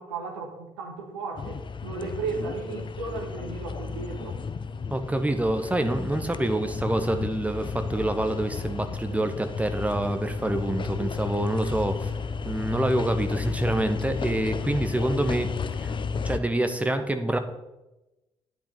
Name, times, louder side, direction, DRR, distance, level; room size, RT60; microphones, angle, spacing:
voice 1, 0.0-4.4, right 4 dB, 75° right, 2 dB, 1.5 m, -35 dB
sound 1, 1.4-16.4, left 5 dB, 35° left, 0.7 m, -33 dB
voice 2, 4.9-12.2 12.4-15.5 15.8-15.9 16.2-17.4, right 1 dB, 10° right, 8 dB, 1.2 m, -26 dB
10.0 x 8.6 x 4.0 m, 0.98 s
figure-of-eight pair, 40°, 15 cm